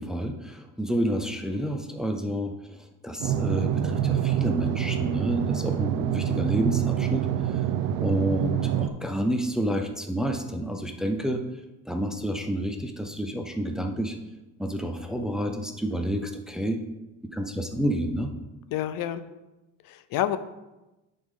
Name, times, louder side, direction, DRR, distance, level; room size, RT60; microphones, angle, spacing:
voice 1, 0.0-2.5 3.0-7.2 8.0-11.4 11.9-14.1 14.6-16.8 17.3-18.3, equal, ahead, 4 dB, 0.6 m, -29 dB
sound 1, 3.2-8.9, right 10 dB, 65° right, 0.6 m, -26 dB
voice 2, 18.7-19.2 19.8-20.4, left 12 dB, 70° left, 12 dB, 0.6 m, -28 dB
9.8 x 5.2 x 3.7 m, 1.0 s
cardioid pair, 135°, 35 cm